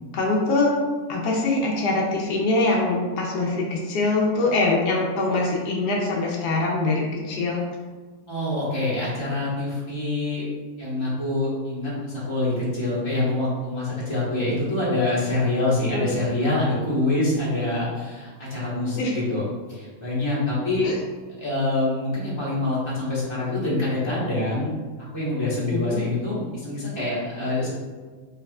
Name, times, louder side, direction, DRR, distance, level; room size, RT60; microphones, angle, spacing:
voice 1, 0.1-0.7 1.1-7.6 15.9-16.1 18.9-19.1 20.8-21.0 25.7-26.0, left 2 dB, 80° left, -2 dB, 1.3 m, -23 dB
voice 2, 8.3-10.5 10.8-19.4 19.7-20.9 21.4-24.8 25.1-27.7, left 2 dB, 20° left, -8 dB, 1.2 m, -25 dB
4.6 x 3.3 x 2.3 m, 1.4 s
omnidirectional pair, 1.7 m